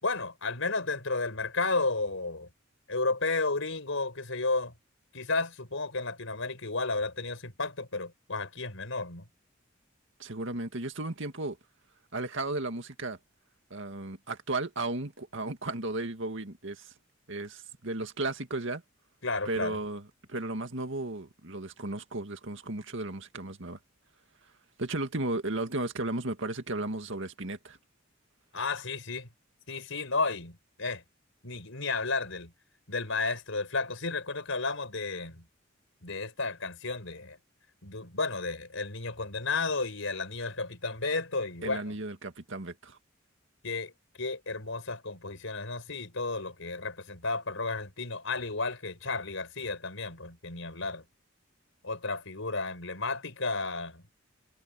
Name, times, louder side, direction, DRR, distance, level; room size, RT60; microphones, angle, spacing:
voice 1, 0.0-2.5 2.9-4.7 5.1-9.2 19.2-19.8 28.5-29.3 29.7-31.0 31.4-32.5 32.9-35.4 36.0-37.4 37.8-41.9 43.6-43.9 44.2-51.0 51.8-54.0, left 3 dB, 75° left, 5.4 m, -32 dB
voice 2, 10.2-11.6 12.1-13.2 13.7-16.9 17.3-18.8 19.5-23.8 24.8-27.8 41.6-43.0, right 2 dB, 70° right, 2.2 m, -34 dB
head